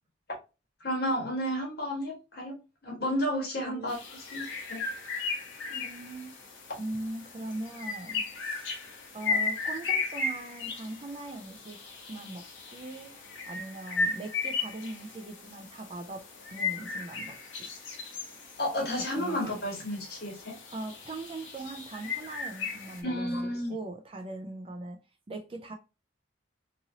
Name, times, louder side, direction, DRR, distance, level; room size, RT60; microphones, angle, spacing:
voice 1, 0.8-2.5 2.8-3.9 4.3-4.8 18.6-20.5 23.0-23.8, equal, 55° left, 1.3 m, -31 dB
voice 2, 3.6-3.9 5.7-6.4 6.8-8.7 9.1-11.8 12.1-13.2 13.5-17.7 19.1-19.6 20.7-23.3 23.7-25.0 25.3-25.7, right 2 dB, 30° right, 0.4 m, -40 dB
sound 1, 3.9-23.0, left 4 dB, 75° left, 0.9 m, -36 dB
3.0 x 2.6 x 2.7 m
head